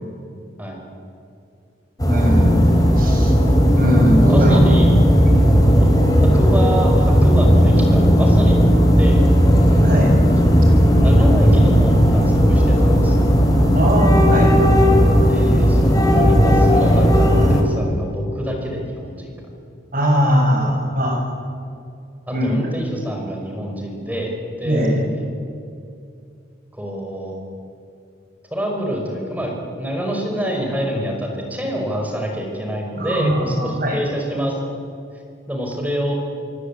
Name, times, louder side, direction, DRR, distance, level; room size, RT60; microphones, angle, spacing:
sound 1, 2.0-17.6, equal, 20° left, 3.7 m, -14 dB
voice 1, 2.1-2.7 3.0-3.4 3.7-4.6 5.2-5.3 9.8-10.1 13.7-14.5 19.9-21.2 22.3-22.6 24.6-25.0 33.0-34.0, equal, 45° right, 1 dB, 7.1 m, -20 dB
voice 2, 4.3-4.9 5.6-5.9 6.2-8.7 9.0-9.3 10.4-10.6 11.0-13.3 15.3-19.4 20.6-20.7 22.3-25.2 26.7-27.4 28.5-29.5 29.8-34.6 35.5-36.1, equal, 10° right, 1 dB, 5.3 m, -26 dB
27.5 x 23.0 x 8.6 m, 2.5 s
head